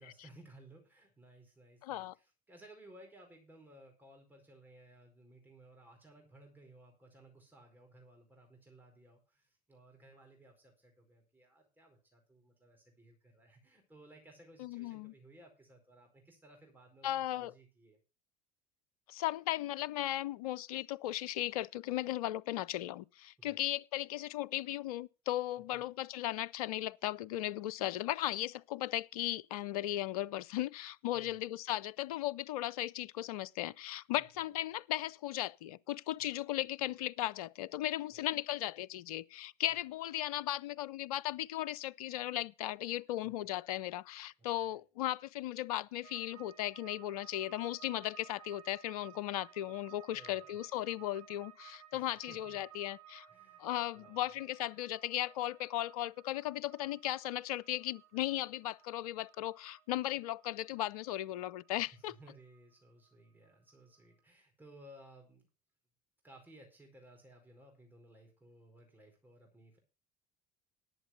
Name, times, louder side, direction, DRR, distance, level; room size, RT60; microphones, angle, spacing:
voice 1, 0.0-18.0 23.4-23.6 25.7-25.8 31.1-31.4 34.2-34.5 36.2-36.3 38.1-38.3 39.7-39.8 43.2-43.3 44.6-44.7 50.1-50.6 51.9-52.6 53.3-53.7 53.9-54.3 61.7-65.5 66.2-69.8, right 1 dB, 10° right, 4.6 m, -59 dB
voice 2, 1.8-2.1 14.6-15.1 17.0-17.5 19.1-53.3 53.6-62.2, left 14 dB, 70° left, 0.5 m, -37 dB
sound 1, 46.0-63.1 63.4-64.1, right 12 dB, 70° right, 5.7 m, -58 dB
11.0 x 7.9 x 5.8 m
figure-of-eight pair, 65°, 19 cm